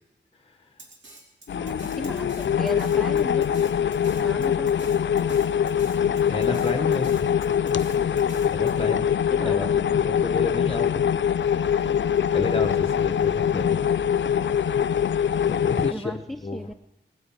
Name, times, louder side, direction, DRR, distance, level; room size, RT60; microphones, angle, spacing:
Drum kit, 0.8-8.7, right 2 dB, 80° right, 2.7 m, -47 dB
sound 1, 1.5-15.9, left 8 dB, 75° left, 0.4 m, -23 dB
voice 1, 1.5-3.6 4.2-4.8 9.3-9.9 15.9-16.7, left 1 dB, ahead, 10 dB, 0.6 m, -36 dB
voice 2, 6.3-7.3 8.5-9.1 9.4-10.9 11.7-11.9 12.3-13.8 15.5-16.1 16.4-16.7, left 3 dB, 30° left, 6 dB, 0.9 m, -30 dB
18.5 x 9.3 x 7.4 m, 0.96 s
wide cardioid pair, 90°, 19 cm